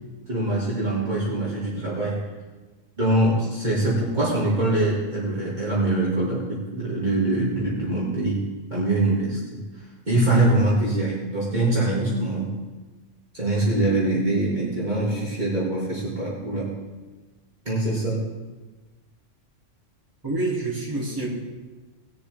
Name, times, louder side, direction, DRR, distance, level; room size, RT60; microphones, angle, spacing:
voice 1, 0.3-2.2 3.0-8.4 8.7-9.6 10.1-12.5 13.3-16.8 17.7-18.2, right 2 dB, 35° right, -7 dB, 2.5 m, -23 dB
voice 2, 20.2-21.3, right 2 dB, 15° right, -6 dB, 2.8 m, -27 dB
19.5 x 7.1 x 3.5 m, 1.2 s
omnidirectional pair, 1.3 m